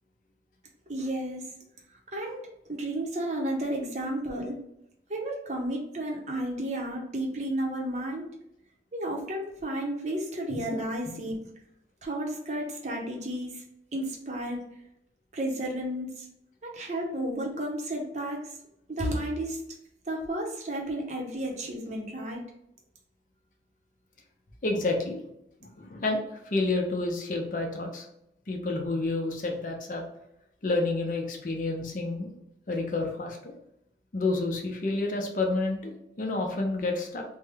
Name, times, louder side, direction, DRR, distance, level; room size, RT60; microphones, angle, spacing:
voice 1, 0.9-1.5 2.1-4.6 5.1-8.3 8.9-11.4 12.0-13.6 13.9-14.6 15.3-16.3 16.6-18.4 18.9-19.6 20.1-22.4, right 1 dB, 40° right, 0 dB, 0.7 m, -32 dB
voice 2, 24.6-25.2 25.6-28.1 28.5-30.0 30.6-32.3 32.7-33.5 34.1-37.2, left 2 dB, 45° left, 2 dB, 0.6 m, -29 dB
3.5 x 2.1 x 3.4 m, 0.79 s
head